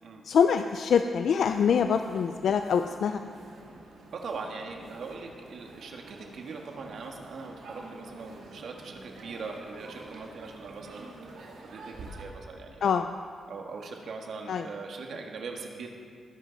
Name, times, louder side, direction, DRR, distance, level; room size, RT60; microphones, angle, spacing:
voice 1, 0.2-3.2 12.8-13.1 14.5-14.7, left 7 dB, 70° left, 8 dB, 0.4 m, -24 dB
sound 1, 1.4-12.2, right 2 dB, 85° right, 2.5 m, -48 dB
voice 2, 4.1-11.3 11.6-13.0 13.5-15.9, right 4 dB, 70° right, 2 dB, 1.8 m, -41 dB
19.5 x 11.0 x 4.0 m, 2.2 s
cardioid pair, 115°, 0 cm